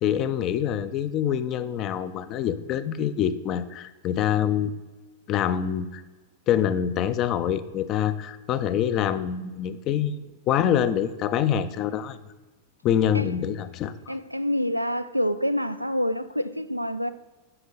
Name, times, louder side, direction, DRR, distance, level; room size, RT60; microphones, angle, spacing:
voice 1, 0.0-4.7 5.3-6.0 6.5-10.2 10.5-12.2 12.8-14.2, left 9 dB, 35° left, 0.5 m, -25 dB
voice 2, 14.1-17.1, equal, 90° right, 0.3 m, -27 dB
7.8 x 5.3 x 5.7 m
figure-of-eight pair, 90°, 0 cm